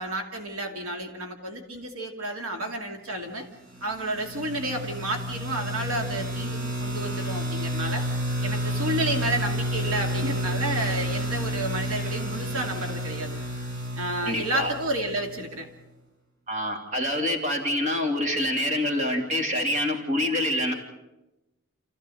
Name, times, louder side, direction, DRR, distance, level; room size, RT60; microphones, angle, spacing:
voice 1, 0.0-3.5 3.8-8.1 8.4-13.4 14.0-15.7, right 1 dB, 75° right, 3 dB, 2.4 m, -31 dB
sound 1, 3.7-15.5, equal, 55° right, 5.2 m, -30 dB
voice 2, 14.2-14.7 16.5-20.7, left 1 dB, 35° right, 3 dB, 2.8 m, -26 dB
28.0 x 15.0 x 7.6 m, 0.99 s
head